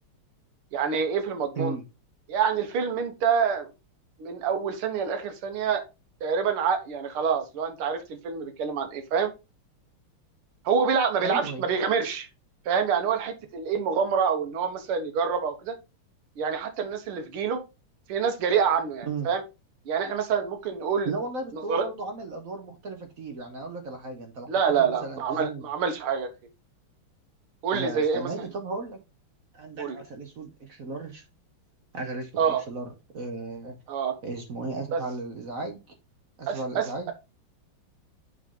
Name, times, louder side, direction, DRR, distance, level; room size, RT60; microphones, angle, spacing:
voice 1, 0.7-1.8 2.3-3.7 4.2-5.8 6.2-9.3 10.7-12.3 12.7-15.8 16.4-17.6 18.1-19.4 19.9-21.1 21.5-21.9 24.5-26.3 27.6-28.3 29.8-30.0 32.4-32.6 33.9-34.1 34.9-35.0 36.5-37.1, right 6 dB, 80° right, 2.0 m, -26 dB
voice 2, 11.2-11.6 19.1-19.3 21.0-24.5 24.8-25.6 27.7-29.0 29.5-31.2 31.9-33.8 34.2-35.8 36.4-37.1, right 3 dB, 50° right, 1.1 m, -35 dB
7.9 x 4.0 x 3.7 m
omnidirectional pair, 2.4 m